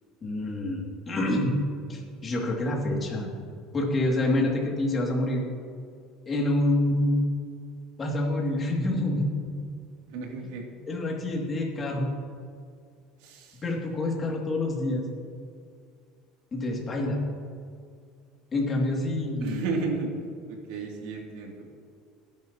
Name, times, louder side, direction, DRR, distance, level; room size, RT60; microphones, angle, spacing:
voice 1, 0.2-1.5 1.9-3.3 3.7-5.4 6.3-7.3 8.0-9.6 10.9-12.1 13.6-15.0 16.5-17.2 18.5-19.6, left 1 dB, 25° left, -1 dB, 2.5 m, -27 dB
voice 2, 10.1-10.6 13.2-13.6 19.4-20.1 20.5-21.7, right 3 dB, 75° right, 0 dB, 2.8 m, -33 dB
21.0 x 10.5 x 3.0 m, 2.3 s
cardioid pair, 150°, 0 cm